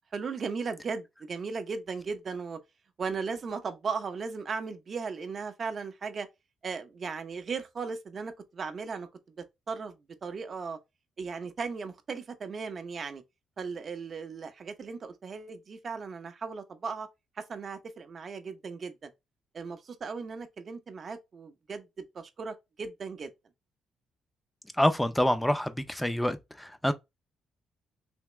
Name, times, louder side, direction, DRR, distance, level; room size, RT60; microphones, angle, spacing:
voice 1, 0.1-2.6 3.0-6.3 6.6-9.1 9.4-10.0 10.2-10.8 11.2-13.2 13.6-17.1 17.4-19.1 19.5-23.3, right 5 dB, 45° right, 0.7 m, -37 dB
voice 2, 24.7-26.9, left 1 dB, 5° left, 0.5 m, -27 dB
3.5 x 2.9 x 3.0 m
cardioid pair, 90°, 0 cm